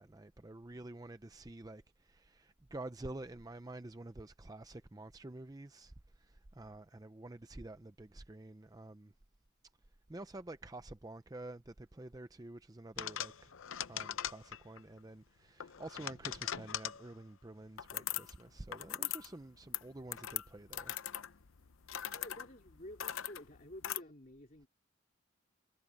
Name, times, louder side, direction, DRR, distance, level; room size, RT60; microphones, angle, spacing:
voice 1, 0.0-9.1 10.1-13.5 13.8-20.9, right 2 dB, 20° right, 0.5 m, -49 dB
sound 1, 13.0-14.8 15.6-17.1 17.8-18.4 18.7-19.3 19.5-24.0, left 11 dB, 85° left, 0.7 m, -40 dB
voice 2, 22.1-24.7, left 1 dB, 40° left, 3.4 m, -51 dB
head